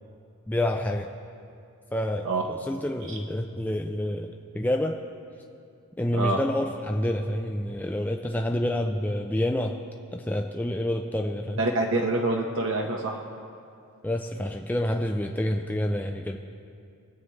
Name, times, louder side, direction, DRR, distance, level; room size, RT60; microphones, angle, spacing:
voice 1, 0.5-1.1 1.9-5.0 6.0-9.8 10.1-11.6 14.0-16.4, left 1 dB, 10° left, 3 dB, 0.4 m, -28 dB
voice 2, 11.6-13.2, right 2 dB, 55° right, 1 dB, 0.8 m, -26 dB
22.5 x 8.2 x 3.2 m, 2.5 s
head